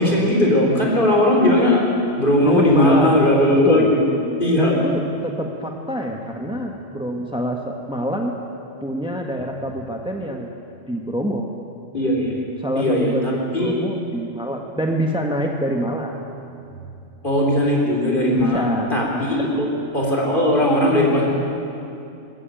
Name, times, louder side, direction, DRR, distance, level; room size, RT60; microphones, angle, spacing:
voice 1, 0.0-1.9 2.2-4.1 4.4-4.8 11.9-12.3 12.8-13.8 17.2-19.7 19.9-21.3, left 1 dB, 45° left, -2 dB, 4.3 m, -18 dB
voice 2, 2.4-3.2 3.5-3.9 4.6-8.3 8.8-10.5 10.9-11.5 12.6-16.1 18.3-19.3, equal, 5° right, 2 dB, 1.2 m, -26 dB
20.5 x 14.5 x 9.1 m, 2.6 s
omnidirectional pair, 1.3 m